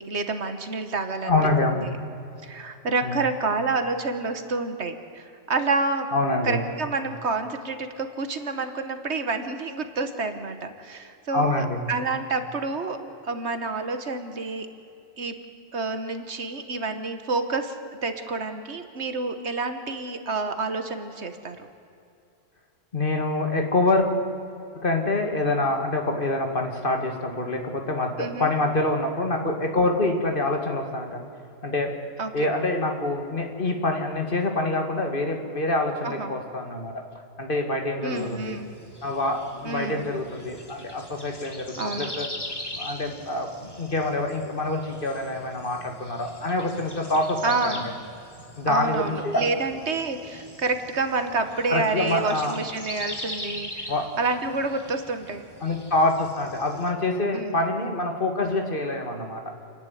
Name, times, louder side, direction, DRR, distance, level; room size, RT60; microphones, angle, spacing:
voice 1, 0.0-1.4 1.8-1.9 2.4-6.1 6.4-13.0 13.2-14.7 15.2-15.3 15.7-17.7 18.0-21.7 28.2-28.5 32.2-32.5 36.0-36.3 38.0-38.7 39.6-40.1 41.8-42.1 47.4-47.9 48.7-53.9 54.2-55.4 57.3-57.6, right 3 dB, 65° right, 8 dB, 1.6 m, -28 dB
voice 2, 1.2-1.9 3.0-3.2 6.1-6.6 11.3-11.8 22.9-24.1 24.8-31.3 31.6-31.9 32.3-37.0 37.4-38.6 39.0-42.3 42.7-47.9 48.6-49.5 51.7-52.5 53.9-54.1 55.6-59.4, left 2 dB, 45° left, 3 dB, 2.2 m, -26 dB
sound 1, 38.1-56.9, left 1 dB, 20° left, 1.8 m, -41 dB
28.5 x 10.5 x 9.4 m, 2.6 s
omnidirectional pair, 1.2 m